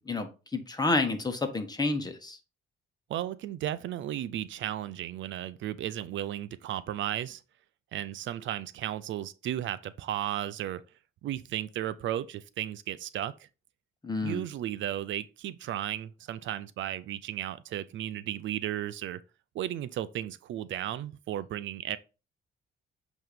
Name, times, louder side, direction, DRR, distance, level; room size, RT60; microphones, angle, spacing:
voice 1, 0.0-2.4 14.0-14.4, left 3 dB, 20° left, 1.4 m, -30 dB
voice 2, 3.1-7.4 7.9-10.8 11.2-13.5 14.2-19.2 19.5-22.0, right 12 dB, 70° right, 0.5 m, -34 dB
7.7 x 3.0 x 5.1 m
cardioid pair, 90°, 20 cm